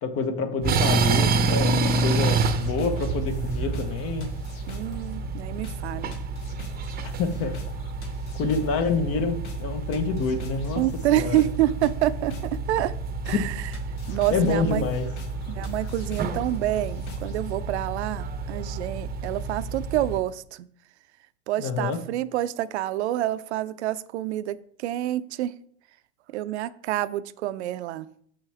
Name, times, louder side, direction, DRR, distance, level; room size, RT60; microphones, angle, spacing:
voice 1, 0.0-4.3 7.0-7.7 8.3-10.8 11.1-11.4 14.3-15.1 21.6-22.0, left 4 dB, 40° left, 7 dB, 1.1 m, -27 dB
sound 1, 0.6-20.2, right 3 dB, 25° right, 0.8 m, -29 dB
sound 2, 2.3-17.5, left 4 dB, 70° left, 1.4 m, -44 dB
voice 2, 4.7-6.1 10.8-12.9 13.2-13.5 14.1-14.8 15.5-20.7 21.5-25.5 26.3-28.1, right 14 dB, 70° right, 15 dB, 0.5 m, -27 dB
7.1 x 5.7 x 3.4 m, 0.63 s
hypercardioid pair, 95°, 35 cm